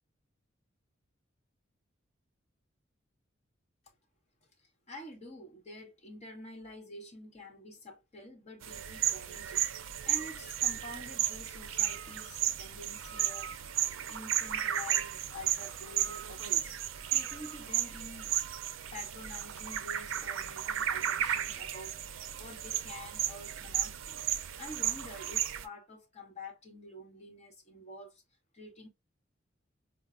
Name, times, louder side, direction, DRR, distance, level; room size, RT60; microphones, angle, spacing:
voice 1, 4.6-13.5 14.1-16.8 17.1-18.3 18.9-22.0 22.3-28.2 28.5-28.9, left 1 dB, 35° left, 1.0 m, -48 dB
sound 1, 8.6-25.6, right 10 dB, 80° right, 0.4 m, -34 dB
4.4 x 2.0 x 2.4 m
head